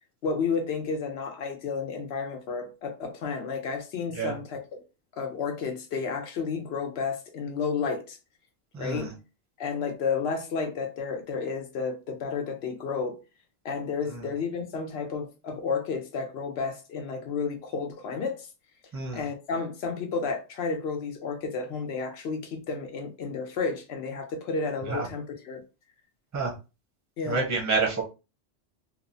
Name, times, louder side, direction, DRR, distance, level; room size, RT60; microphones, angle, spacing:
voice 1, 0.2-4.8 5.1-8.2 8.8-9.1 9.6-13.2 13.6-18.5 19.1-25.6 27.2-27.5, left 5 dB, 70° left, 0.9 m, -31 dB
voice 2, 8.7-9.1 14.1-14.3 18.9-19.2 24.9-25.1 26.3-26.5 27.2-28.0, right 4 dB, 20° right, 0.6 m, -28 dB
2.9 x 2.0 x 2.6 m
omnidirectional pair, 1.2 m